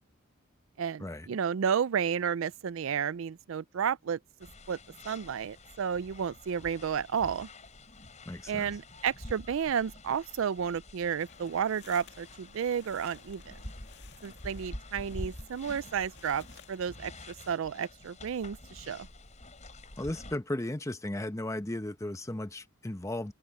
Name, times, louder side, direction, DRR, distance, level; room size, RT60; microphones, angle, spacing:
voice 1, 0.8-4.2 4.7-4.8 5.1-7.5 8.5-13.6 14.2-17.1 17.5-19.1, right 7 dB, 65° right, 0.4 m, -32 dB
sound 1, 4.4-20.4, left 1 dB, 35° left, 5.4 m, -48 dB
voice 2, 8.3-8.7 20.0-23.3, left 1 dB, 15° left, 0.8 m, -35 dB
sound 2, 11.2-17.5, left 6 dB, 55° left, 2.3 m, -57 dB
head